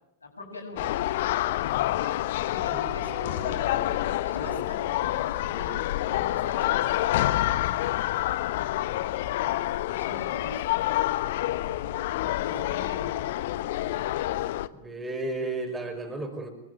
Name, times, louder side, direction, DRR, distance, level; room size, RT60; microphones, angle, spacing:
voice 1, 0.2-0.9 2.5-3.8 4.2-7.3 9.9-10.7 12.4-13.3, left 1 dB, 75° left, 3 dB, 7.8 m, -42 dB
sound 1, 0.8-14.7, left 14 dB, 55° left, 1.1 m, -28 dB
voice 2, 2.7-4.0 4.4-4.6 14.7-16.5, right 2 dB, 10° right, 3 dB, 5.5 m, -35 dB
26.5 x 23.0 x 9.4 m, 0.87 s
figure-of-eight pair, 90°, 0 cm